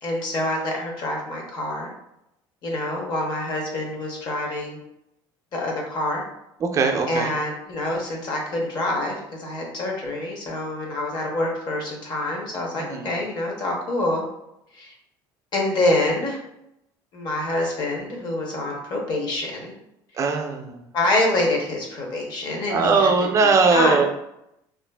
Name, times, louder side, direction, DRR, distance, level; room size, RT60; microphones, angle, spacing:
voice 1, 0.0-1.9 2.6-4.8 5.5-6.2 7.1-14.2 14.7-14.9 15.5-16.4 17.1-19.7 20.9-23.1 23.7-24.0, left 2 dB, 50° left, 0 dB, 0.7 m, -26 dB
voice 2, 6.6-7.3 12.8-13.1 20.2-20.8 22.7-24.0, right 4 dB, 30° right, 3 dB, 0.4 m, -20 dB
2.5 x 2.4 x 2.2 m, 0.82 s
cardioid pair, 120°, 10 cm